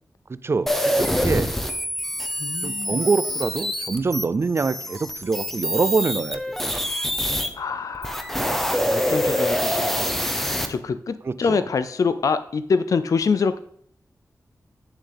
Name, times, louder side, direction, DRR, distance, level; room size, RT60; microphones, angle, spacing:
voice 1, 0.3-1.5 2.6-6.6 11.3-11.6, right 4 dB, 40° right, 15 dB, 0.4 m, -25 dB
sound 1, 0.7-7.5 7.9-10.7, equal, 5° left, 0.8 m, -25 dB
voice 2, 2.4-3.0 7.5-8.4 8.8-10.1 10.7-13.6, left 5 dB, 55° left, 12 dB, 0.4 m, -25 dB
9.1 x 7.1 x 3.5 m, 0.64 s
wide cardioid pair, 125°, 7 cm